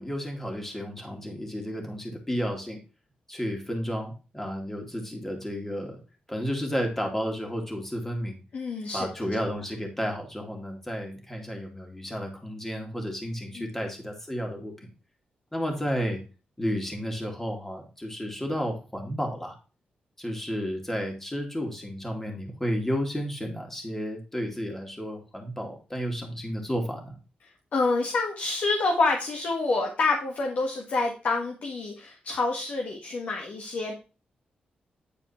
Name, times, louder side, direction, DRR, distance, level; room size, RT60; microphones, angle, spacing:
voice 1, 0.0-2.8 3.3-6.0 6.3-8.4 8.9-14.9 15.5-16.2 16.6-19.5 20.2-27.2, equal, 10° left, 1 dB, 2.5 m, -32 dB
voice 2, 8.5-9.2 13.5-13.7 27.7-33.9, left 3 dB, 65° left, 1 dB, 1.5 m, -27 dB
9.9 x 4.5 x 4.3 m, 0.33 s
cardioid pair, 105°, 3 cm